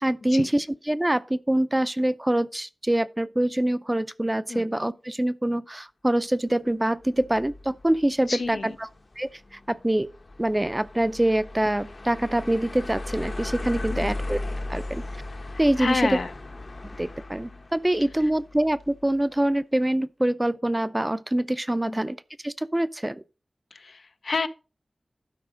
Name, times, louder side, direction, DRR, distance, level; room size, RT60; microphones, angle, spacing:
voice 1, 0.0-8.9 9.2-9.3 9.7-10.1 10.4-14.4 14.7-15.0 15.6-16.1 17.0-22.2 22.4-23.2, right 1 dB, 20° right, 0.5 m, -25 dB
sound 1, 7.0-19.2, left 2 dB, 55° left, 0.9 m, -37 dB
voice 2, 8.3-8.8 13.9-14.1 15.5-16.3 18.2-18.3 21.8-22.1 23.7-24.5, left 4 dB, 90° left, 0.6 m, -30 dB
12.0 x 4.8 x 5.0 m
wide cardioid pair, 70°, 0 cm